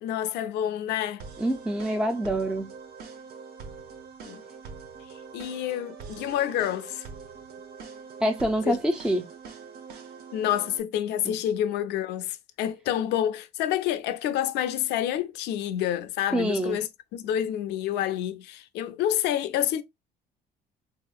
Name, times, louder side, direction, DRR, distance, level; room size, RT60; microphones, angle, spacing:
voice 1, 0.0-1.3 4.3-4.4 5.1-7.0 8.7-8.8 10.3-19.8, left 11 dB, 85° left, 0.5 m, -28 dB
sound 1, 1.2-10.8, right 5 dB, 70° right, 0.8 m, -44 dB
voice 2, 1.4-2.7 8.2-9.3 11.2-11.4 16.3-16.8, right 1 dB, 5° right, 0.4 m, -26 dB
3.6 x 2.8 x 2.3 m
cardioid pair, 110°, 17 cm